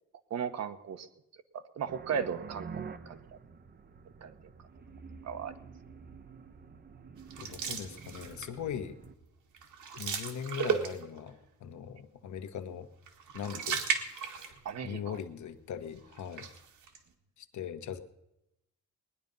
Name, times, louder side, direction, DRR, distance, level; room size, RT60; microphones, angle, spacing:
voice 1, 0.3-1.1 1.5-2.7 3.1-3.2 4.2-4.3 5.2-5.5 14.6-15.2, right 7 dB, 60° right, 10 dB, 1.1 m, -36 dB
sound 1, 1.9-9.1, right 6 dB, 35° right, 0.8 m, -48 dB
sound 2, 7.3-8.6 9.0-9.3 9.5-11.3 13.0-14.8 15.2-15.3 16.1-17.0, right 7 dB, 85° right, 1.8 m, -35 dB
voice 2, 7.4-9.0 10.0-12.9 13.3-13.9 14.2-14.5 14.8-16.5 17.4-18.0, left 8 dB, 75° left, 9 dB, 1.3 m, -40 dB
20.0 x 10.5 x 5.4 m, 0.86 s
wide cardioid pair, 155°, 30 cm